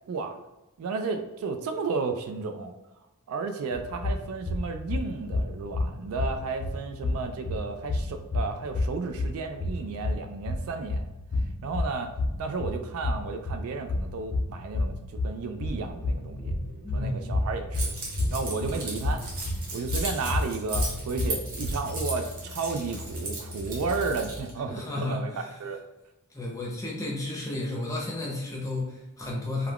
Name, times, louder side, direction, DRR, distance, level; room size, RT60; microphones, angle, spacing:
voice 1, 0.1-0.4 0.8-2.7 3.3-11.1 11.6-12.1 12.4-14.9 15.2-16.5 16.9-17.9 18.3-19.2 19.7-25.3 25.6-25.8, right 4 dB, 70° right, 6 dB, 0.3 m, -33 dB
sound 1, 3.7-21.9, left 2 dB, 70° left, 0.6 m, -31 dB
sound 2, 15.7-24.4, left 1 dB, 85° right, 0.8 m, -39 dB
voice 2, 16.8-17.4 24.7-25.5 26.3-29.7, left 2 dB, 15° left, -3 dB, 0.6 m, -33 dB
Keys jangling, 17.7-24.5, right 2 dB, 40° right, 0.9 m, -37 dB
2.3 x 2.3 x 3.4 m, 0.99 s
head